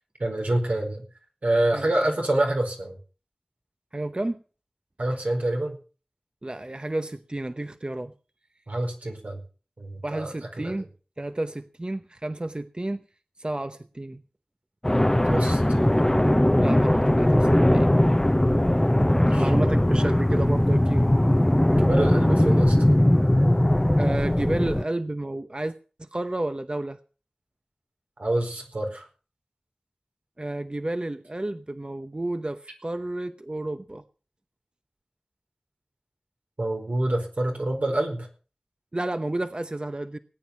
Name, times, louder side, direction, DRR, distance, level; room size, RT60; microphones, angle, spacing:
voice 1, 0.2-1.0 1.4-2.9 5.0-5.8 8.7-9.4 9.8-10.8 15.2-15.9 19.2-19.5 21.7-22.8 28.2-29.1 36.6-38.3, right 1 dB, 85° right, 4.6 m, -27 dB
voice 2, 3.9-4.4 6.4-8.1 10.0-10.9 11.2-13.0 13.4-14.2 16.6-17.9 19.4-21.2 24.0-27.0 30.4-34.0 38.9-40.2, right 1 dB, 40° right, 0.8 m, -31 dB
sound 1, 14.8-24.8, left 1 dB, 20° left, 0.7 m, -20 dB
18.5 x 9.3 x 5.9 m
wide cardioid pair, 50°, 3 cm